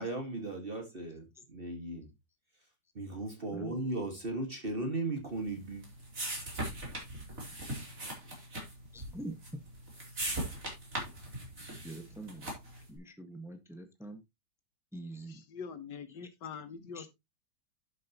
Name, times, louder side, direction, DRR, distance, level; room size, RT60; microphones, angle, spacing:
voice 1, 0.0-2.1 3.0-5.8, right 2 dB, 30° right, 2.0 m, -37 dB
sound 1, 5.4-12.8, right 1 dB, 50° right, 4.2 m, -40 dB
voice 2, 8.9-9.3 11.8-12.5 12.9-14.2 14.9-15.4 16.9-17.1, right 2 dB, ahead, 1.3 m, -44 dB
voice 3, 15.3-17.1, left 6 dB, 75° left, 1.8 m, -44 dB
11.5 x 7.4 x 3.0 m
omnidirectional pair, 1.9 m